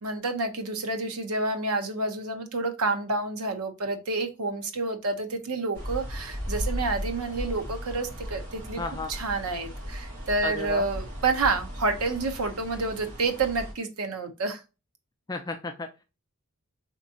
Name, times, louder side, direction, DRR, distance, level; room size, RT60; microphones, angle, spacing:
voice 1, 0.0-8.8 9.1-14.6, right 3 dB, 85° right, 6 dB, 0.7 m, -29 dB
sound 1, 5.7-13.7, equal, 40° right, 2.0 m, -36 dB
voice 2, 8.8-9.1 10.4-10.9 15.3-16.0, left 2 dB, 15° left, 5 dB, 0.3 m, -33 dB
3.4 x 3.0 x 2.7 m, 0.28 s
head